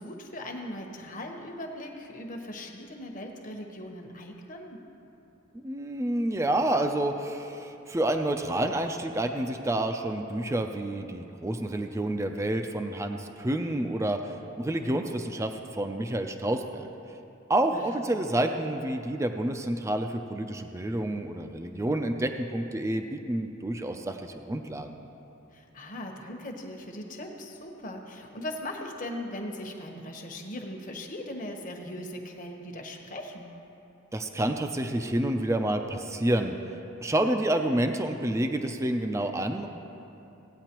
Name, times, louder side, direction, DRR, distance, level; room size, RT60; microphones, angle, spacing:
voice 1, 0.0-4.8 17.7-18.2 25.5-33.5, left 1 dB, 40° left, 2 dB, 1.1 m, -39 dB
voice 2, 5.6-16.9 17.5-25.0 34.1-36.5 37.0-39.7, right 1 dB, 15° right, 5 dB, 0.4 m, -29 dB
17.0 x 9.0 x 3.0 m, 2.9 s
head